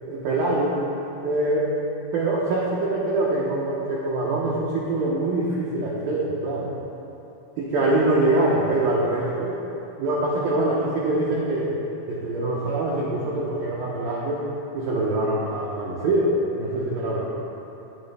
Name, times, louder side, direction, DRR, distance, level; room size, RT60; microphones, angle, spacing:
voice 1, 0.1-0.8 1.2-1.7 2.1-6.7 7.6-9.6 10.0-11.8 12.1-14.5 14.7-16.3 16.6-17.2, right 2 dB, 70° right, -6 dB, 2.3 m, -24 dB
21.0 x 9.5 x 2.2 m, 2.9 s
omnidirectional pair, 5.2 m